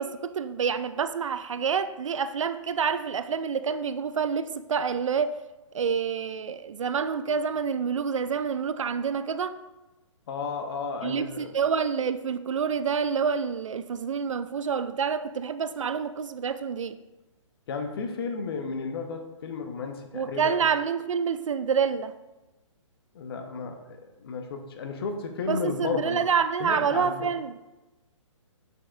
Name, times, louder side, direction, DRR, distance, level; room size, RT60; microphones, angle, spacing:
voice 1, 0.0-5.4 5.7-9.6 11.0-17.0 20.1-22.1 25.5-27.6, right 6 dB, 70° right, 0.5 m, -27 dB
voice 2, 10.3-11.5 17.7-20.7 23.1-26.2 26.6-27.3, left 5 dB, 45° left, 1.0 m, -33 dB
7.4 x 6.4 x 2.4 m
figure-of-eight pair, 135°, 17 cm